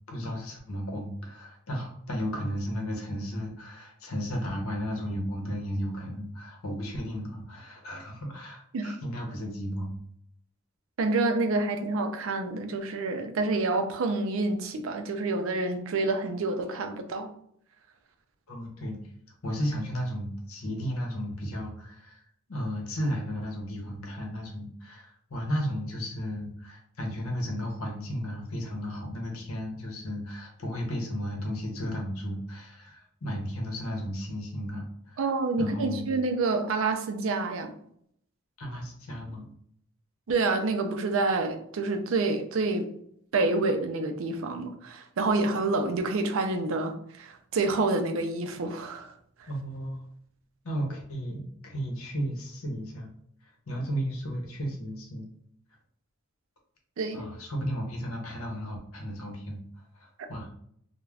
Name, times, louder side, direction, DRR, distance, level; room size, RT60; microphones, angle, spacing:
voice 1, 0.1-10.0 18.5-19.0 19.4-22.2 22.5-35.2 35.6-36.1 38.6-39.5 49.5-50.0 50.6-53.1 53.7-55.2 57.1-59.6 60.0-60.5, equal, 75° left, 1 dB, 0.8 m, -34 dB
voice 2, 11.0-17.3 35.2-37.7 40.3-42.9 43.3-49.1 57.0-57.3, right 3 dB, 65° right, 6 dB, 0.4 m, -28 dB
2.3 x 2.1 x 3.3 m, 0.68 s
head